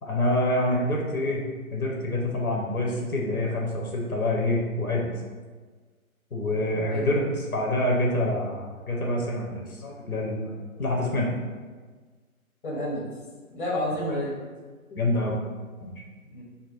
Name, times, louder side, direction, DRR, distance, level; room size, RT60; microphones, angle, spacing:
voice 1, 0.0-1.4 1.7-5.1 6.3-10.5 10.8-11.3 14.9-15.4 15.8-16.0, left 1 dB, 80° left, -2 dB, 1.0 m, -26 dB
voice 2, 6.9-7.2 12.6-13.1 13.5-14.4 16.3-16.4, left 1 dB, 35° left, -3 dB, 1.0 m, -30 dB
3.4 x 2.1 x 4.2 m, 1.4 s
figure-of-eight pair, 140°, 43 cm